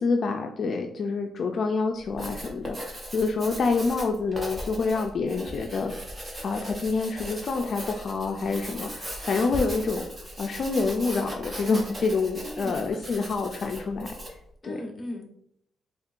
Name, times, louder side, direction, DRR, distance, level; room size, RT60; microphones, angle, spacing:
voice 1, 0.0-5.9 6.4-14.1 14.6-14.8, left 4 dB, 45° left, 3 dB, 0.3 m, -27 dB
Writing, 2.0-14.4, equal, 20° right, 0.9 m, -38 dB
voice 2, 12.4-12.8 14.6-15.2, left 1 dB, 15° left, 0 dB, 1.0 m, -37 dB
4.4 x 3.4 x 2.5 m, 0.73 s
cardioid pair, 135°, 0 cm